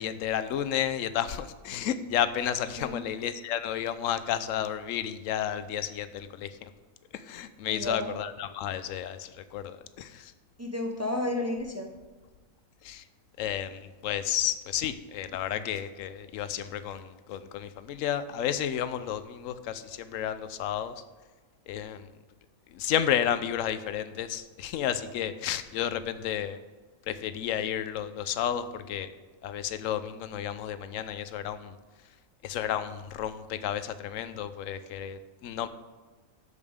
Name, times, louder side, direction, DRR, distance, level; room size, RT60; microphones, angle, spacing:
voice 1, 0.0-6.7 7.1-10.3 12.8-13.0 13.4-20.9 21.7-22.1 22.7-26.6 27.1-29.1 29.4-31.8 32.4-35.7, left 10 dB, 75° left, 12 dB, 1.0 m, -32 dB
voice 2, 7.7-8.1 10.6-11.9, left 2 dB, 20° right, 2 dB, 0.4 m, -31 dB
13.0 x 5.2 x 3.6 m, 1.3 s
omnidirectional pair, 1.4 m